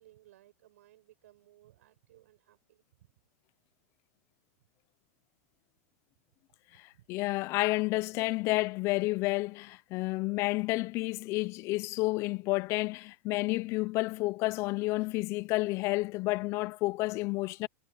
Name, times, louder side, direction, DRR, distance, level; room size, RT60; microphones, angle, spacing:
voice 1, 0.0-2.8 6.9-7.1, right 14 dB, 70° right, 5.0 m, -61 dB
voice 2, 6.7-17.7, left 21 dB, 35° left, 0.5 m, -30 dB
supercardioid pair, 150°, 8 cm